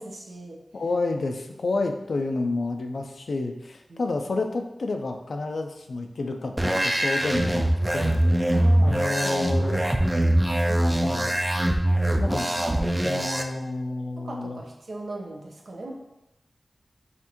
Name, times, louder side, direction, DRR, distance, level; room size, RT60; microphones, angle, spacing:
voice 1, 0.0-0.6 3.9-4.2 8.5-9.4 14.2-15.9, right 2 dB, 75° right, 0 dB, 0.8 m, -39 dB
voice 2, 0.7-7.6 7.9-8.3 8.8-9.8 10.7-11.3 12.2-12.7 13.1-14.6, left 3 dB, 80° left, 4 dB, 0.4 m, -30 dB
sound 1, 6.6-13.4, right 1 dB, 15° right, 0.4 m, -23 dB
5.7 x 2.6 x 2.9 m, 0.91 s
wide cardioid pair, 100°, 0 cm